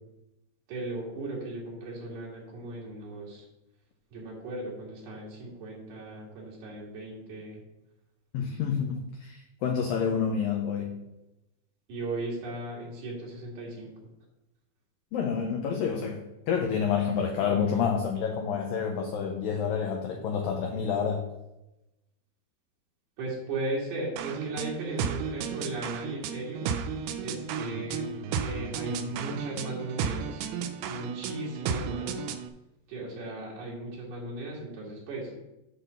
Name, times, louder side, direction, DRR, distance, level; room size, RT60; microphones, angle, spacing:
voice 1, 0.7-3.5 4.1-7.6 11.9-14.0 23.2-26.8 27.2-30.5 30.9-32.2 32.9-35.4, right 2 dB, 65° right, -4 dB, 4.0 m, -37 dB
voice 2, 8.3-11.0 15.1-21.2, left 7 dB, 80° left, 2 dB, 2.0 m, -28 dB
sound 1, 24.2-32.5, right 6 dB, 80° right, 2.4 m, -33 dB
8.8 x 3.9 x 6.8 m, 0.93 s
omnidirectional pair, 5.0 m